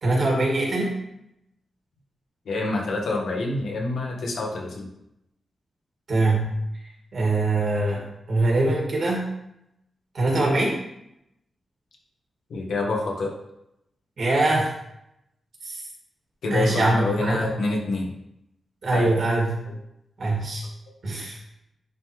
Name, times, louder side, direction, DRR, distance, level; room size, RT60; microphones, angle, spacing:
voice 1, 0.0-1.0 6.1-6.6 7.1-9.3 10.1-10.8 14.2-14.7 15.6-15.8 16.5-17.5 18.8-19.5 20.2-20.7 21.0-21.4, right 2 dB, 50° right, -3 dB, 2.2 m, -23 dB
voice 2, 2.4-4.9 12.5-13.3 16.4-18.1 18.9-19.1 19.7-19.8, left 2 dB, 80° left, -1 dB, 1.5 m, -27 dB
10.5 x 3.8 x 3.2 m, 0.82 s
wide cardioid pair, 175°, 0 cm